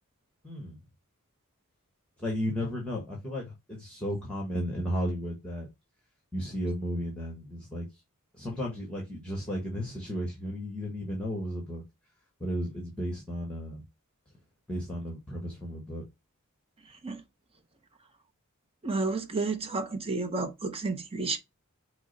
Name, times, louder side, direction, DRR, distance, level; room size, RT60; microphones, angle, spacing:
voice 1, 0.4-0.8 2.2-5.7 6.3-7.9 8.3-11.8 12.4-13.8 14.7-16.0, equal, 5° left, 1.2 m, -34 dB
voice 2, 18.8-21.4, right 3 dB, 25° right, 0.7 m, -31 dB
5.9 x 2.1 x 4.0 m
head